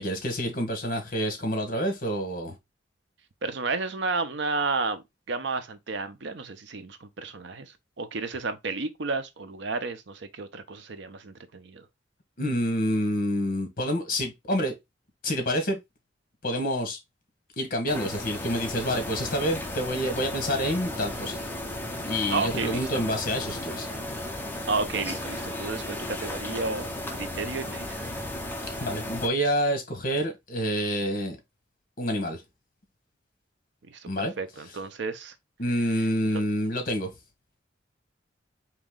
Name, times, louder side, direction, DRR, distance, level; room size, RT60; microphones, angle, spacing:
voice 1, 0.0-2.6 12.4-14.7 15.2-15.8 16.4-17.0 17.6-21.4 22.1-23.9 28.8-31.4 32.0-32.4 34.1-34.3 35.6-37.1, equal, 50° left, 1.3 m, -28 dB
voice 2, 3.4-11.8 22.3-23.0 24.7-28.1 33.9-34.1 34.4-35.3, right 3 dB, 70° right, 0.7 m, -32 dB
sound 1, 17.9-29.3, left 1 dB, 10° left, 0.7 m, -35 dB
4.0 x 3.0 x 3.7 m
head